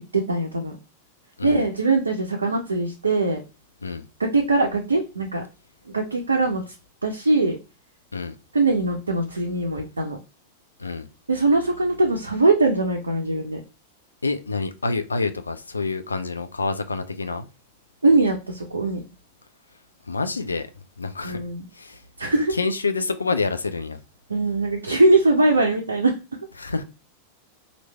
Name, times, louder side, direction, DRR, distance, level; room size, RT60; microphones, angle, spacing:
voice 1, 0.1-0.8 1.4-3.4 4.2-5.4 5.9-6.7 7.0-7.6 8.5-10.2 11.3-13.6 18.0-19.0 21.2-21.6 22.2-22.5 24.3-26.2, right 2 dB, 75° right, 0.5 m, -21 dB
voice 2, 14.2-17.5 20.1-20.7 21.0-21.4 21.7-22.0 22.5-24.0 26.6-26.8, left 3 dB, 80° left, 0.3 m, -27 dB
3.1 x 2.5 x 3.2 m
figure-of-eight pair, 90°, 0 cm